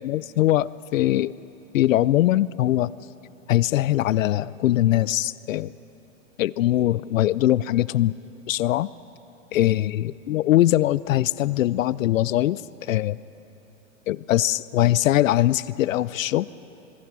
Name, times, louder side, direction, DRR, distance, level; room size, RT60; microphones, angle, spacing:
voice 1, 0.0-1.3 1.7-2.9 3.5-5.7 6.4-8.1 8.5-8.9 9.5-13.2 14.1-16.5, left 14 dB, 80° left, 19 dB, 0.6 m, -21 dB
26.5 x 24.0 x 6.2 m, 2.9 s
hypercardioid pair, 130°, 39 cm